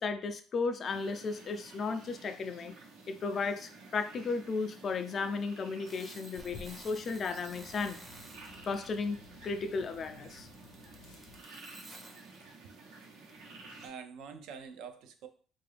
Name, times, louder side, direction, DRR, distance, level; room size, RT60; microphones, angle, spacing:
voice 1, 0.0-2.8 3.1-8.0 8.6-9.2 9.4-10.5, left 4 dB, 40° left, 8 dB, 0.4 m, -34 dB
sound 1, 0.8-13.9, right 3 dB, 90° right, 1.0 m, -53 dB
sound 2, 5.9-12.4, right 2 dB, 20° right, 0.6 m, -54 dB
sound 3, 6.4-11.4, left 4 dB, 75° left, 0.6 m, -54 dB
voice 2, 13.8-15.3, right 6 dB, 75° right, 7 dB, 0.5 m, -46 dB
3.7 x 2.5 x 3.3 m, 0.41 s
cardioid pair, 130°, 0 cm